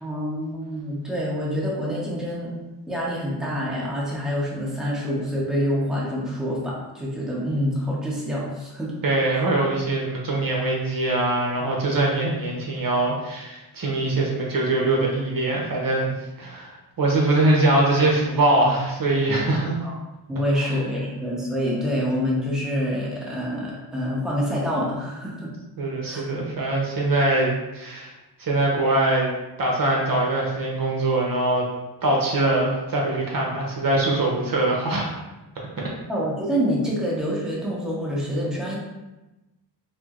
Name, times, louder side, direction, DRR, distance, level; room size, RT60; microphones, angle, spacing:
voice 1, 0.0-2.5 2.9-8.9 9.3-9.4 19.8-19.9 20.3-25.5 26.0-26.2 36.1-38.8, equal, ahead, -6 dB, 0.9 m, -26 dB
voice 2, 9.0-19.7 20.6-20.7 25.8-28.1 28.4-29.3 29.6-31.7 32.0-35.1 35.8-35.9, right 2 dB, 55° right, -3 dB, 0.7 m, -22 dB
4.3 x 2.0 x 2.4 m, 1.0 s
cardioid pair, 85°, 41 cm